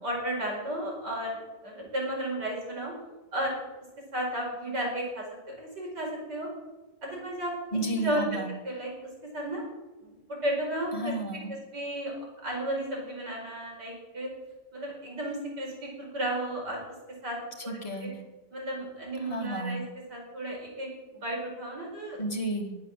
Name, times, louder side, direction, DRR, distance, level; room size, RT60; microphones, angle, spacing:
voice 1, 0.0-2.9 3.3-3.6 4.1-6.5 7.0-7.5 8.0-8.2 8.6-8.9 9.3-9.6 10.0-11.1 11.7-12.1 12.4-14.3 14.7-16.8 17.2-17.4 17.6-18.1 18.5-19.8 20.1-22.2, right 1 dB, 65° right, -1 dB, 5.9 m, -33 dB
voice 2, 7.7-8.5 10.9-11.6 17.7-18.2 19.2-19.8 22.2-22.7, right 1 dB, 20° left, 1 dB, 2.2 m, -32 dB
22.0 x 8.2 x 7.5 m, 1.2 s
omnidirectional pair, 1.9 m